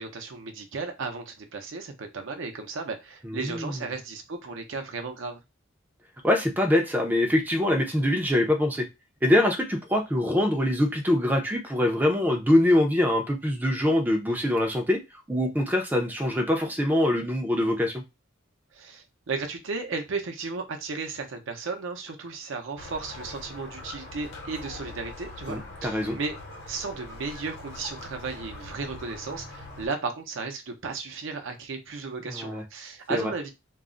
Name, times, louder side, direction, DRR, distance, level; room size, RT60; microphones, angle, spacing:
voice 1, 0.0-5.4 18.7-26.4 26.7-33.5, right 4 dB, 70° right, 5 dB, 0.6 m, -34 dB
voice 2, 3.2-3.8 6.2-8.9 9.2-15.0 15.3-18.0 25.5-26.2 32.3-32.6 33.1-33.3, left 1 dB, 10° right, 2 dB, 0.4 m, -24 dB
Squeak, 22.8-29.9, left 2 dB, 60° left, 0.9 m, -42 dB
2.3 x 2.0 x 3.7 m, 0.23 s
head